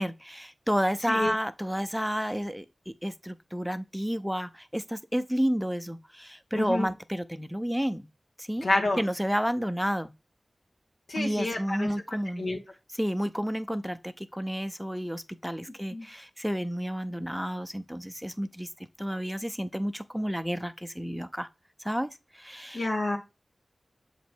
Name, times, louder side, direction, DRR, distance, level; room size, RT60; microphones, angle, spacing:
voice 1, 0.0-2.7 3.0-8.1 8.4-8.7 9.0-10.1 11.2-12.5 13.0-18.7 19.0-21.5 21.8-22.1 22.4-22.9, equal, ahead, 0.5 m, -31 dB
voice 2, 6.5-6.9 8.6-9.0 11.1-11.9 12.4-12.6 15.9-16.1 22.7-23.2, left 2 dB, 75° left, 1.7 m, -28 dB
7.2 x 3.1 x 4.4 m
cardioid pair, 40°, 0 cm